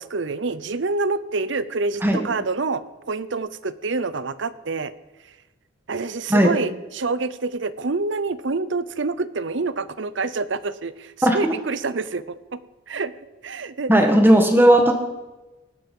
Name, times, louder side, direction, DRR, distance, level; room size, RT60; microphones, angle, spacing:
voice 1, 0.0-4.9 5.9-12.6 12.9-13.1 13.4-13.9, right 3 dB, 70° right, 15 dB, 0.7 m, -27 dB
voice 2, 13.9-14.9, right 1 dB, 10° right, 4 dB, 1.6 m, -15 dB
18.5 x 11.5 x 5.4 m, 1.1 s
head